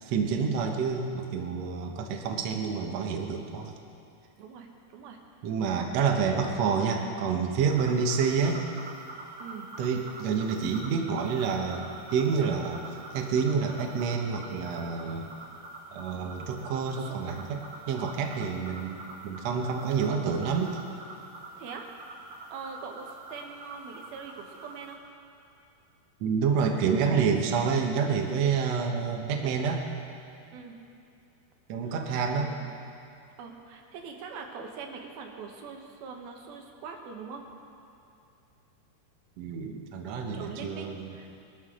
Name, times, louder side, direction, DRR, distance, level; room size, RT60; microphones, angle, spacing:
voice 1, 0.0-3.7 5.4-8.6 9.8-12.8 13.1-15.3 15.9-17.6 17.9-20.8 26.2-29.8 31.7-32.5 39.4-41.1, right 6 dB, 85° right, 2 dB, 1.4 m, -28 dB
voice 2, 4.4-5.2 5.8-5.9 7.8-8.0 9.4-9.7 16.9-17.2 21.6-21.9 22.5-25.0 30.5-30.8 31.9-32.7 33.4-37.5 40.3-41.3, right 5 dB, 70° right, 2 dB, 2.8 m, -43 dB
sound 1, 7.6-24.9, right 3 dB, 45° right, 2.6 m, -45 dB
21.5 x 13.0 x 3.8 m, 2.6 s
omnidirectional pair, 4.9 m